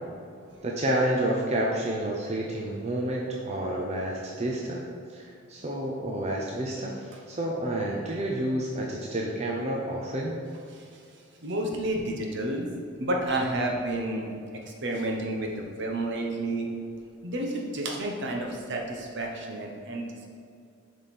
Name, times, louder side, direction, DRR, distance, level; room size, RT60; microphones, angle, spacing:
voice 1, 0.6-4.8 5.1-10.3, right 1 dB, 30° right, -2 dB, 0.7 m, -29 dB
voice 2, 11.4-12.7 13.0-14.3 14.6-16.7 17.2-20.3, right 1 dB, 55° right, 0 dB, 1.0 m, -30 dB
7.3 x 5.2 x 4.3 m, 2.4 s
head